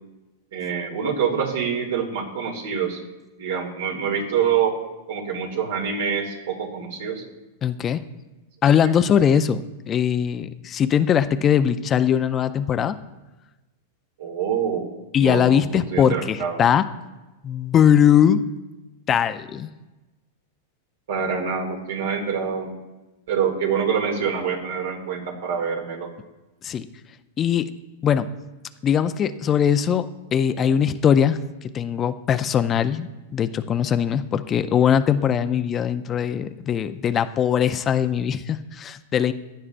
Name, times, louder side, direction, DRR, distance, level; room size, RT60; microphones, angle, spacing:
voice 1, 0.5-3.0 3.4-4.8 5.1-7.2 8.8-8.9 14.2-16.6 21.1-22.7 23.3-26.1, right 7 dB, 70° right, 2 dB, 2.3 m, -26 dB
voice 2, 7.6-8.0 8.6-13.0 15.1-16.8 17.4-18.4 19.1-19.7 26.6-26.9 27.4-27.7 28.0-28.3 28.8-39.3, left 8 dB, 30° left, 11 dB, 0.5 m, -21 dB
15.5 x 11.0 x 2.6 m, 1.1 s
hypercardioid pair, 120°, 0 cm